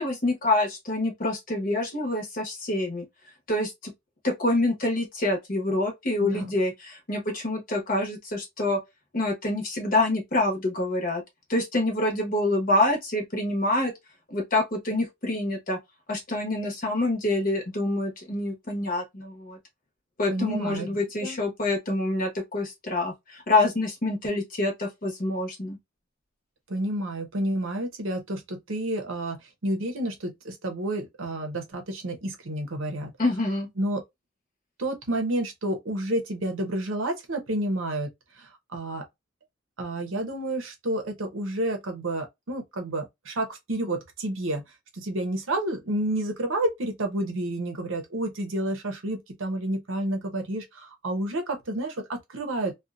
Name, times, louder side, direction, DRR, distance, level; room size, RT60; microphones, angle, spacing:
voice 1, 0.0-3.0 3.5-3.9 4.2-8.8 9.1-11.2 11.5-13.9 14.3-15.8 16.1-19.6 20.2-25.8 33.2-33.7, left 2 dB, 40° left, 0.9 m, -26 dB
voice 2, 6.2-6.5 20.3-20.9 21.2-21.4 26.7-29.4 29.6-33.1 33.8-34.0 34.8-38.1 38.4-39.0 39.8-44.6 44.9-52.7, right 1 dB, 65° right, 0.8 m, -30 dB
2.6 x 2.3 x 2.3 m
head